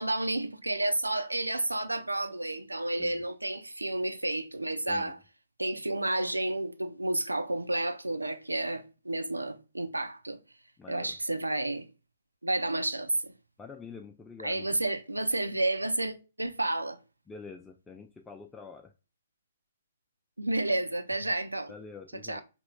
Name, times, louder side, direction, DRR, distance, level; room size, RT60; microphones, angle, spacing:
voice 1, 0.0-5.2 5.6-10.4 10.9-11.9 12.4-13.3 14.4-17.0 20.4-21.7 22.2-22.4, right 2 dB, 90° right, 0.5 m, -31 dB
voice 2, 10.8-11.2 13.6-14.7 17.3-18.9 21.7-22.4, left 5 dB, 10° left, 0.4 m, -46 dB
5.1 x 3.0 x 2.2 m
figure-of-eight pair, 125°, 0 cm